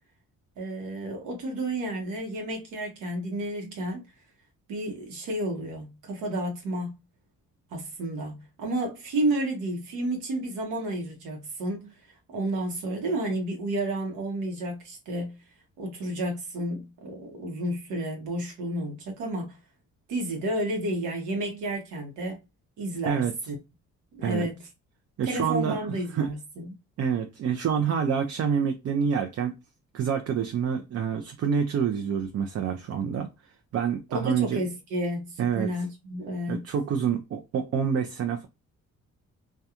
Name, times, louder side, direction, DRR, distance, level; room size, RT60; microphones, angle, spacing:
voice 1, 0.6-4.0 4.7-6.9 7.7-11.9 12.3-15.3 15.8-19.6 20.1-22.4 22.8-23.6 24.1-24.5 25.2-26.7 34.1-35.2 35.5-36.6, right 1 dB, 90° right, 0.9 m, -31 dB
voice 2, 25.2-25.8 26.1-26.3 27.0-29.5 29.9-33.3 33.7-34.6 35.4-35.8 36.5-38.5, right 7 dB, 55° right, 0.5 m, -27 dB
2.4 x 2.2 x 2.7 m
cardioid pair, 90°, 30 cm